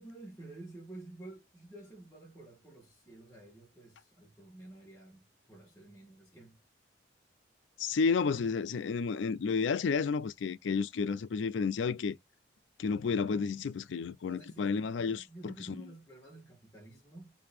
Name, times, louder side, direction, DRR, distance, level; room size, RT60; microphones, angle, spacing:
voice 1, 0.0-6.6 14.3-17.3, right 2 dB, 10° left, 1.4 m, -51 dB
voice 2, 7.8-12.2 12.8-15.5, left 5 dB, 75° left, 0.4 m, -31 dB
3.4 x 2.7 x 3.4 m
head